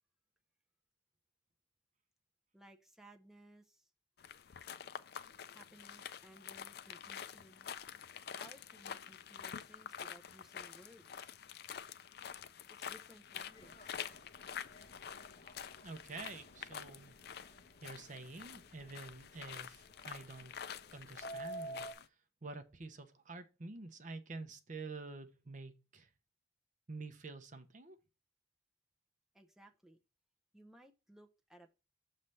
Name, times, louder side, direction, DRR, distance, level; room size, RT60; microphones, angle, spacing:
voice 1, 2.5-3.9 5.5-7.7 8.4-11.3 12.7-14.1 29.3-30.0 30.5-31.7, right 1 dB, ahead, 0.6 m, -60 dB
sound 1, 4.2-22.1, left 8 dB, 55° left, 0.4 m, -48 dB
Subway metro underground, 13.5-21.9, right 1 dB, 35° left, 1.2 m, -52 dB
voice 2, 15.8-17.1 17.5-20.5 20.9-21.9 22.4-26.1 26.9-28.0, right 3 dB, 40° right, 0.6 m, -48 dB
6.5 x 3.2 x 5.4 m
head